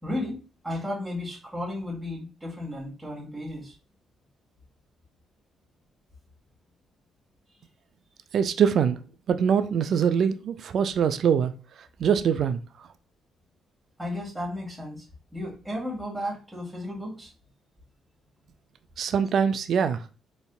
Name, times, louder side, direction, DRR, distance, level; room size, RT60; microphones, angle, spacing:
voice 1, 0.0-3.7 14.0-15.1 15.3-17.3, left 1 dB, 10° right, 1.9 m, -34 dB
voice 2, 8.3-9.0 9.3-11.5 12.0-12.6 19.0-20.0, right 7 dB, 60° right, 0.3 m, -23 dB
4.1 x 3.4 x 2.4 m
cardioid pair, 90°, 0 cm